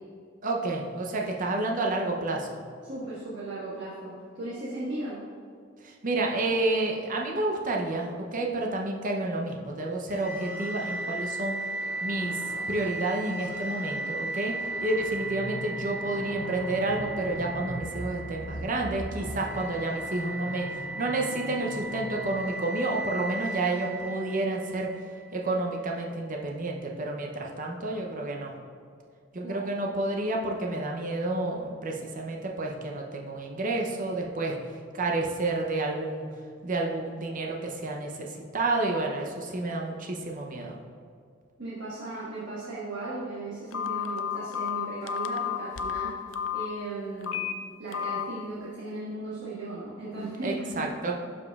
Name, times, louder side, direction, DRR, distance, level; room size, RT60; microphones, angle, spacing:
voice 1, 0.4-2.5 5.8-11.6 12.0-12.3 12.7-14.5 14.8-20.7 21.0-24.9 25.3-28.5 29.3-34.6 34.9-36.3 36.6-40.8 50.4-51.1, right 2 dB, 40° right, 0 dB, 0.6 m, -30 dB
voice 2, 2.8-5.2 29.4-29.7 41.6-46.2 46.5-47.4 47.8-50.8, right 2 dB, 65° right, -9 dB, 1.5 m, -36 dB
sound 1, 10.1-25.2, right 1 dB, 10° right, 1.4 m, -35 dB
Telephone, 43.7-46.7 47.2-47.5 47.9-48.2, left 9 dB, 75° left, 0.4 m, -31 dB
11.5 x 5.0 x 2.4 m, 2.2 s
head